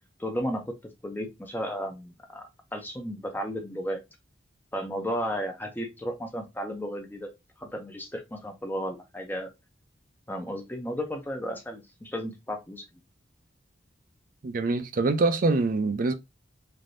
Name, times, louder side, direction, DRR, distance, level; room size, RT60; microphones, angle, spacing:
voice 1, 0.2-0.7 1.0-4.0 4.7-7.3 7.6-9.5 10.3-12.8, equal, 10° left, 0.5 m, -34 dB
voice 2, 14.4-16.1, right 3 dB, 45° right, 0.4 m, -24 dB
3.3 x 2.6 x 2.5 m
head